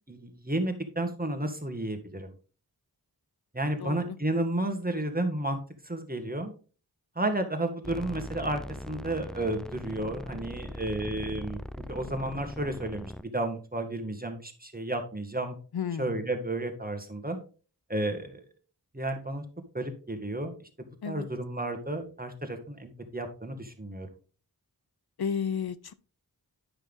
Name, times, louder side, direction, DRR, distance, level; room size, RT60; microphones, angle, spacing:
voice 1, 0.1-2.3 3.5-5.6 5.8-6.5 7.1-8.6 8.9-11.6 11.9-15.5 16.0-17.4 17.9-18.4 18.9-19.4 19.7-24.1, right 1 dB, 20° right, 5 dB, 1.8 m, -32 dB
voice 2, 3.8-4.2 15.7-16.3 21.0-21.3 25.2-25.9, left 7 dB, 70° left, 15 dB, 0.6 m, -32 dB
sound 1, 7.8-13.2, left 1 dB, ahead, 0.4 m, -40 dB
9.9 x 5.7 x 3.7 m, 0.37 s
wide cardioid pair, 45°, 39 cm